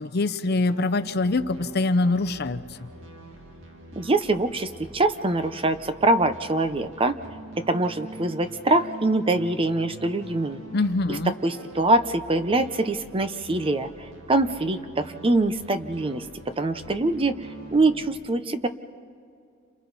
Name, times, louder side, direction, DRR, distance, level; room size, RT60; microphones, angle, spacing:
voice 1, 0.0-2.6 10.7-11.3, left 2 dB, 55° left, 11 dB, 0.7 m, -24 dB
sound 1, 0.6-18.1, right 2 dB, 85° right, 2.3 m, -45 dB
voice 2, 4.0-7.1 7.6-10.6 11.1-17.4 17.7-18.7, right 2 dB, 30° right, 10 dB, 0.8 m, -24 dB
30.0 x 27.5 x 4.1 m, 2.4 s
head